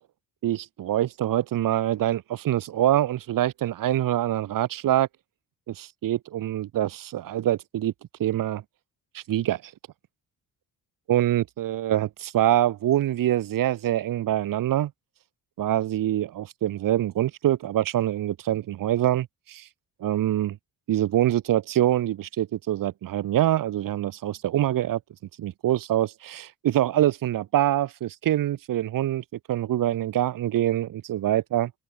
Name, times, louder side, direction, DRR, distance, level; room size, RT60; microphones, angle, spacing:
voice 1, 0.4-5.1 5.7-7.9 8.2-8.6 9.1-9.6 11.1-14.9 15.6-19.7 20.0-20.6 20.9-25.0 25.4-31.7, right 12 dB, 65° right, 3.0 m, -25 dB
open air
cardioid pair, 170°, 36 cm